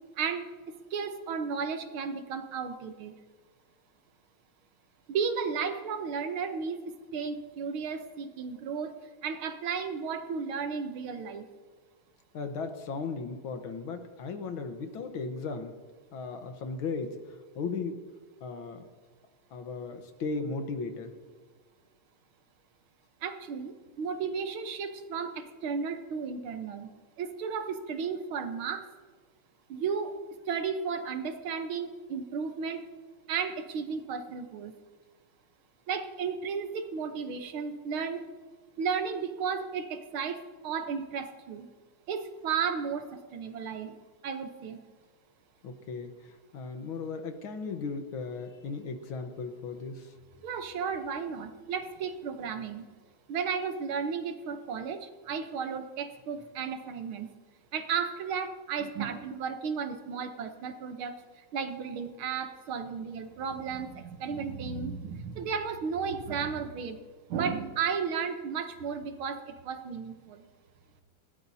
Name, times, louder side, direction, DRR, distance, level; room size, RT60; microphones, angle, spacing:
voice 1, 0.9-3.2 5.1-9.0 9.2-11.5 23.2-26.9 27.2-28.9 29.7-30.2 30.5-32.9 33.3-34.7 35.9-38.2 38.8-41.7 42.1-43.9 44.2-44.8 50.4-52.9 53.3-57.3 57.7-61.2 61.5-67.0 67.3-70.5, right 6 dB, 75° right, 8 dB, 1.8 m, -34 dB
voice 2, 12.3-15.8 16.1-17.2 17.6-18.0 18.4-18.9 19.5-21.1 45.6-50.1, left 4 dB, 70° left, 6 dB, 1.9 m, -36 dB
20.5 x 16.5 x 2.8 m, 1.5 s
omnidirectional pair, 2.4 m